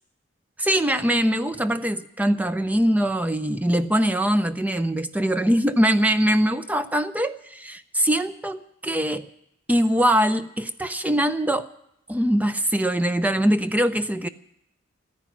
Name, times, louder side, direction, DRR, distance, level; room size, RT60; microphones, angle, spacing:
voice 1, 0.6-9.3 9.7-11.7 12.1-14.3, equal, 10° right, 12 dB, 0.5 m, -22 dB
13.5 x 10.0 x 10.0 m, 0.77 s
head